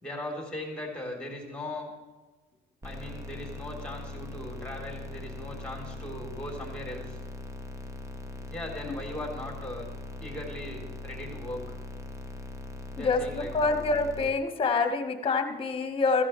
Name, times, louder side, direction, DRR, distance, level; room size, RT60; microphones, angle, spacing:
voice 1, 0.0-1.9 2.8-7.2 8.5-9.9 10.2-11.8 13.0-13.6, left 1 dB, 5° left, 0 dB, 3.6 m, -38 dB
sound 1, 2.8-14.3, left 2 dB, 20° right, 1.1 m, -41 dB
voice 2, 13.0-16.2, left 4 dB, 35° left, 7 dB, 1.5 m, -27 dB
15.0 x 14.5 x 3.2 m, 1.3 s
cardioid pair, 110°, 17 cm